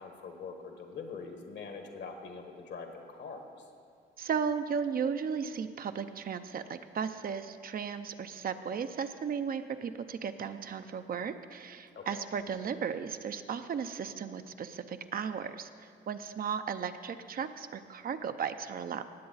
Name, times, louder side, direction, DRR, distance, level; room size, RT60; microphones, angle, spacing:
voice 1, 0.0-3.5 11.9-12.3, left 5 dB, 65° left, 4 dB, 1.6 m, -43 dB
voice 2, 4.2-15.7 16.1-19.0, right 6 dB, 50° right, 9 dB, 0.5 m, -35 dB
18.0 x 7.7 x 4.0 m, 2.2 s
cardioid pair, 90°, 20 cm